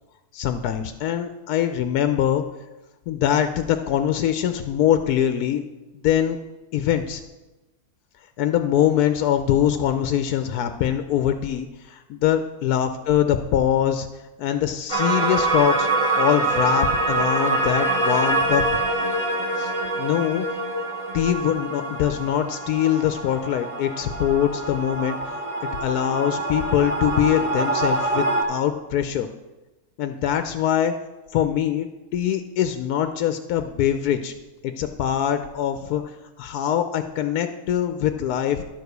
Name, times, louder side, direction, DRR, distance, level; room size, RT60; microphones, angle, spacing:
voice 1, 0.3-2.4 3.1-5.6 6.0-6.4 6.7-7.2 8.4-14.1 14.4-15.9 16.2-18.6 19.6-19.7 20.0-20.4 21.1-29.3 30.0-30.9 31.3-34.3 34.6-36.1 36.4-38.6, left 10 dB, 80° left, 8 dB, 1.1 m, -23 dB
sound 1, 14.9-28.4, right 2 dB, 25° right, 0.8 m, -25 dB
11.0 x 4.8 x 6.6 m, 1.1 s
omnidirectional pair, 1.6 m